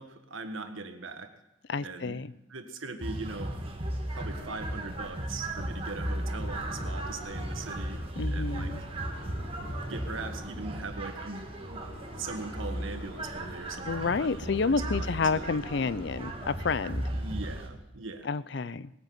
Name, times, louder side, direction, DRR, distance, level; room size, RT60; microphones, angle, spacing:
voice 1, 0.0-1.3 1.8-3.6 4.1-8.7 9.6-11.8 12.1-15.5 17.1-18.3, right 3 dB, 80° right, 7 dB, 1.6 m, -41 dB
voice 2, 1.7-2.3 8.2-8.8 13.9-17.0 18.2-18.9, left 4 dB, 55° left, 18 dB, 0.5 m, -30 dB
sound 1, 3.0-17.7, right 1 dB, 30° right, 1.7 m, -36 dB
sound 2, 4.2-16.7, left 1 dB, 85° left, 6.6 m, -49 dB
19.0 x 9.2 x 7.8 m, 0.95 s
head